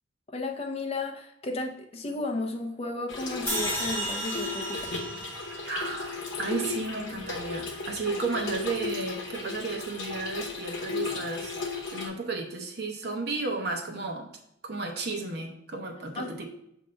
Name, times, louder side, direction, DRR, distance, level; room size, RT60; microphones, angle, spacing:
voice 1, 0.3-5.0 16.2-16.5, left 2 dB, 30° left, 4 dB, 0.5 m, -34 dB
Trickle dribble / Fill (with liquid), 3.1-12.1, left 4 dB, 65° left, 0.9 m, -35 dB
sound 1, 3.5-6.7, right 1 dB, 10° left, 1.9 m, -34 dB
voice 2, 5.7-11.6 11.9-14.3 14.6-16.5, right 3 dB, 50° right, 2 dB, 0.8 m, -33 dB
6.4 x 2.8 x 5.4 m, 0.77 s
head